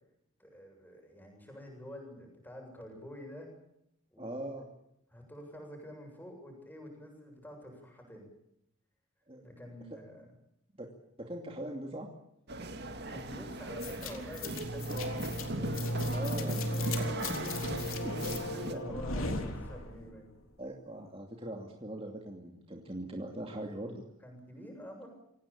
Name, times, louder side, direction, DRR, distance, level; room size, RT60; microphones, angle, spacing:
voice 1, 0.4-3.5 4.1-4.3 4.6-4.7 5.1-8.3 9.4-10.3 13.1-15.9 18.3-20.3 24.2-25.1, equal, 10° left, 1 dB, 7.6 m, -48 dB
voice 2, 4.2-4.6 9.3-9.4 10.8-10.9 11.2-12.1 16.1-17.3 18.0-18.3 18.6-19.0 20.6-24.0, right 1 dB, 25° right, 1 dB, 2.6 m, -41 dB
sound 1, 12.5-18.7, right 2 dB, 50° right, 2.1 m, -39 dB
sound 2, 13.8-20.2, left 1 dB, 75° left, 3.5 m, -36 dB
25.5 x 18.0 x 8.7 m, 0.78 s
head